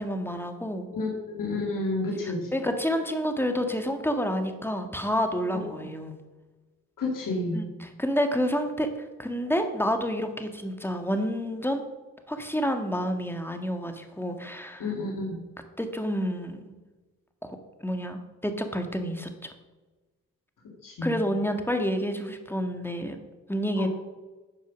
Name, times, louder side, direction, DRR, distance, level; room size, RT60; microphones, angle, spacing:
voice 1, 0.0-0.9 2.2-6.2 7.5-11.8 12.3-14.9 15.8-16.8 17.4-19.3 21.0-23.2 23.5-23.9, equal, 5° left, 6 dB, 1.6 m, -29 dB
voice 2, 0.9-2.5 5.7-5.8 7.0-7.6 14.8-15.4 20.8-21.2 23.8-23.9, left 2 dB, 75° left, -2 dB, 2.0 m, -30 dB
9.7 x 5.6 x 6.1 m, 1.2 s
supercardioid pair, 45°, 32 cm